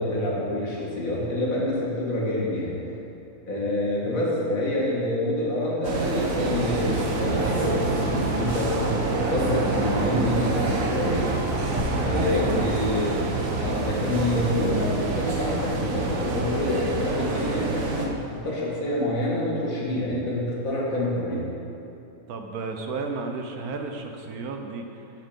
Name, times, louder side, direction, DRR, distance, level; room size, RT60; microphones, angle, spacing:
voice 1, 0.0-2.7 3.5-11.3 12.0-13.2 13.6-21.4, left 1 dB, 65° left, -5 dB, 2.7 m, -27 dB
sound 1, 5.8-18.1, right 3 dB, 65° right, 1.5 m, -27 dB
sound 2, 6.7-16.4, left 2 dB, 45° left, 1.5 m, -36 dB
sound 3, 11.8-14.4, equal, 35° right, 1.4 m, -34 dB
voice 2, 12.3-12.9 22.3-25.1, right 4 dB, 85° right, 4 dB, 1.5 m, -33 dB
9.8 x 9.0 x 5.3 m, 2.8 s
omnidirectional pair, 1.5 m